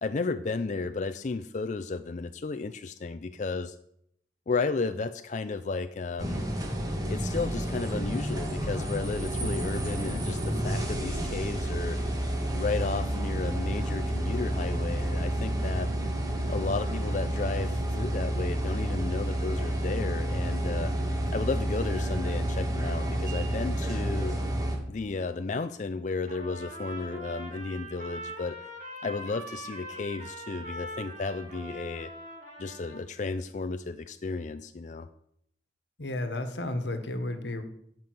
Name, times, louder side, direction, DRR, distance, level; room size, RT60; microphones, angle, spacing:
voice 1, 0.0-3.8 4.5-6.4 7.1-12.0 12.5-15.9 16.5-20.9 21.3-24.4 24.9-28.6 29.0-32.1 32.6-35.1, left 3 dB, 45° left, 9 dB, 0.4 m, -33 dB
sound 1, 6.2-24.8, right 1 dB, 20° right, 1.8 m, -30 dB
Trumpet, 26.3-33.0, right 1 dB, 45° right, 4.3 m, -42 dB
voice 2, 36.0-37.6, left 1 dB, 85° left, 8 dB, 1.5 m, -32 dB
12.0 x 5.5 x 8.0 m, 0.73 s
head